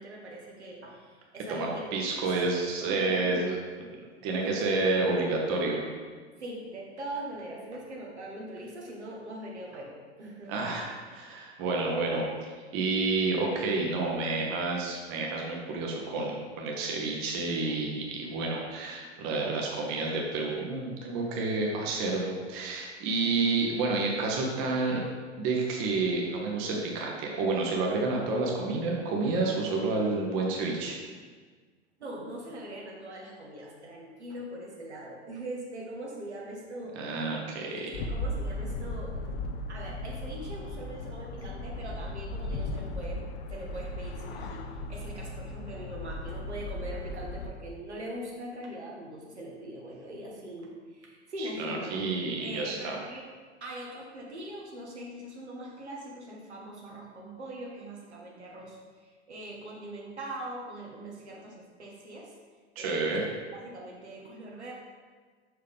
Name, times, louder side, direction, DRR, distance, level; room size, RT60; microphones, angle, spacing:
voice 1, 0.0-1.8 2.3-2.4 2.9-3.5 6.4-10.7 32.0-37.0 37.6-39.2 39.7-43.2 43.5-52.0 52.4-53.3 53.6-62.3 62.8-63.2 63.4-64.7, right 1 dB, 75° right, -3 dB, 1.4 m, -42 dB
voice 2, 1.5-3.5 4.2-5.8 10.5-12.3 12.7-25.0 25.4-31.0 37.0-37.9 51.4-53.0 62.8-63.2, right 3 dB, 40° right, -1 dB, 1.1 m, -29 dB
sound 1, 37.9-47.5, left 2 dB, 55° left, 0.6 m, -36 dB
6.3 x 4.8 x 3.6 m, 1.5 s
figure-of-eight pair, 90°, 34 cm